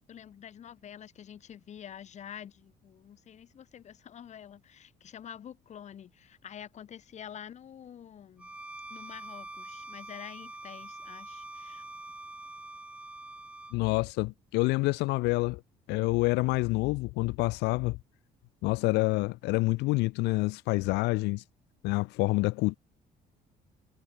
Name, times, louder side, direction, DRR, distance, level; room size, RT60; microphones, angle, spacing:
voice 1, 0.1-8.5 8.9-11.8, left 9 dB, 45° left, 0.9 m, -47 dB
Bowed string instrument, 8.4-13.8, right 2 dB, 5° right, 0.8 m, -45 dB
voice 2, 13.7-15.6 15.9-18.0 18.6-21.4 21.8-22.8, left 23 dB, 90° left, 0.4 m, -27 dB
cardioid pair, 110°, 17 cm